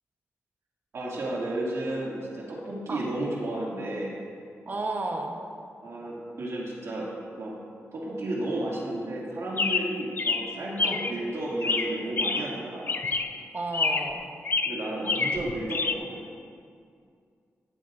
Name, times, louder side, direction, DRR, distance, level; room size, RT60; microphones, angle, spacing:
voice 1, 0.9-4.2 5.8-7.1 7.4-7.6 7.9-13.0 14.6-16.2, right 1 dB, 65° right, -5 dB, 2.4 m, -32 dB
voice 2, 4.7-5.4 10.8-11.0 13.5-14.2, right 2 dB, 35° right, 2 dB, 1.1 m, -32 dB
Chirp tweet, 9.6-11.2 11.6-12.6 12.9-13.4 13.7-14.2 14.4-15.9, left 4 dB, 40° left, 0.5 m, -28 dB
14.5 x 8.0 x 2.6 m, 2.3 s
cardioid pair, 95°, 5 cm